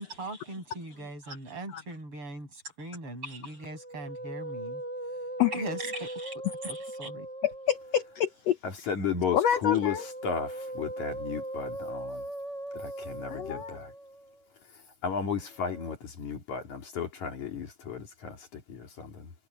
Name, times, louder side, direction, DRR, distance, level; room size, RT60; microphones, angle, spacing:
voice 1, 0.0-4.8 5.5-7.3, right 1 dB, 35° right, 8.9 m, -40 dB
Musical instrument, 3.6-8.3 9.6-14.4 15.5-16.0, right 1 dB, 20° right, 7.9 m, -39 dB
voice 2, 7.4-8.6 9.3-10.0 13.3-13.8, left 10 dB, 75° left, 1.5 m, -27 dB
voice 3, 8.6-12.2 12.7-13.9 14.7-19.3, left 7 dB, 55° left, 3.7 m, -34 dB
omnidirectional pair, 4.1 m